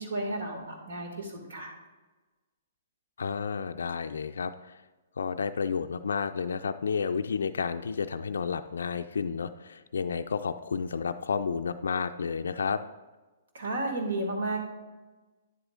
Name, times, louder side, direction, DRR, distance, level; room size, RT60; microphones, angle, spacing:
voice 1, 0.0-1.7 13.5-14.6, right 2 dB, 65° right, 2 dB, 2.0 m, -32 dB
voice 2, 3.2-4.8 5.2-12.8, left 5 dB, 75° left, 8 dB, 0.3 m, -31 dB
9.9 x 8.0 x 2.5 m, 1.2 s
hypercardioid pair, 125°, 0 cm